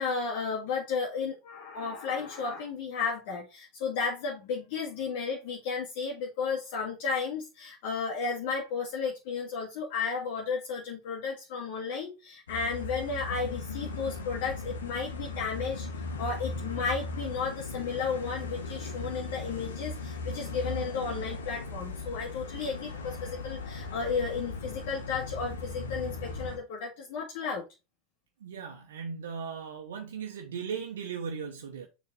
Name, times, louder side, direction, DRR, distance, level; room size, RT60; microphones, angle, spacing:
voice 1, 0.0-15.9 16.2-27.6, left 5 dB, 60° left, 1.9 m, -33 dB
sound 1, 12.5-26.6, left 3 dB, 80° left, 1.5 m, -38 dB
voice 2, 28.4-31.9, right 6 dB, 75° right, 1.1 m, -37 dB
6.6 x 4.0 x 4.0 m
hypercardioid pair, 85°, 0 cm